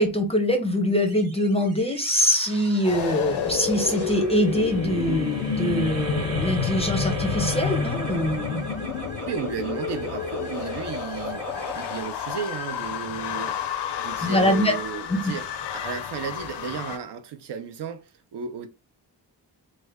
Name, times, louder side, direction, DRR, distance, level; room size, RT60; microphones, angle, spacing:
voice 1, 0.0-8.6 14.2-14.8 15.1-15.3, equal, 15° left, 0.4 m, -23 dB
sound 1, 1.0-13.6, equal, 35° right, 0.9 m, -36 dB
sound 2, 2.8-17.0, left 7 dB, 80° left, 0.5 m, -30 dB
voice 2, 9.3-13.6 14.0-18.7, right 7 dB, 80° right, 0.6 m, -34 dB
3.3 x 2.1 x 3.3 m
wide cardioid pair, 175°, 41 cm